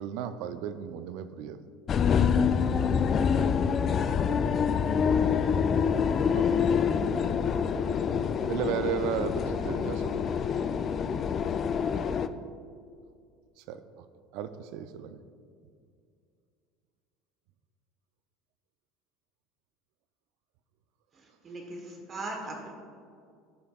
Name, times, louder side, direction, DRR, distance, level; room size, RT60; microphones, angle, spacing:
voice 1, 0.0-1.6 6.3-6.6 8.5-10.3 13.6-14.1 14.3-15.2, right 9 dB, 65° right, 12 dB, 0.4 m, -34 dB
sound 1, 1.9-12.3, left 6 dB, 40° left, 0.3 m, -26 dB
voice 2, 2.5-5.5, right 1 dB, 5° right, 1 dB, 0.7 m, -46 dB
voice 3, 21.1-22.7, right 2 dB, 35° right, 1 dB, 1.2 m, -39 dB
13.0 x 5.0 x 2.4 m, 2.3 s
hypercardioid pair, 80°, 0 cm